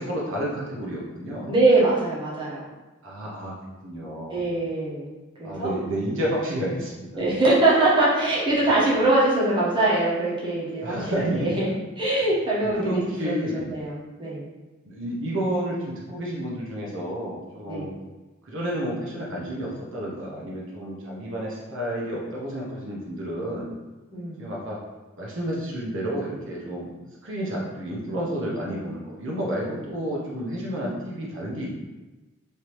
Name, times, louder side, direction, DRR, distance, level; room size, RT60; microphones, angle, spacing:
voice 1, 0.0-1.5 3.0-3.5 3.8-4.4 5.4-7.3 10.8-11.6 12.6-13.7 14.8-17.9 18.4-23.7 24.4-24.8 25.2-26.9 27.2-31.7, right 1 dB, 65° right, -4 dB, 0.7 m, -30 dB
voice 2, 1.5-2.7 4.3-5.1 5.4-5.7 7.1-11.7 12.0-14.4 17.7-17.9 24.1-24.4, right 2 dB, 25° right, -7 dB, 0.8 m, -23 dB
3.2 x 2.7 x 2.9 m, 1.1 s
head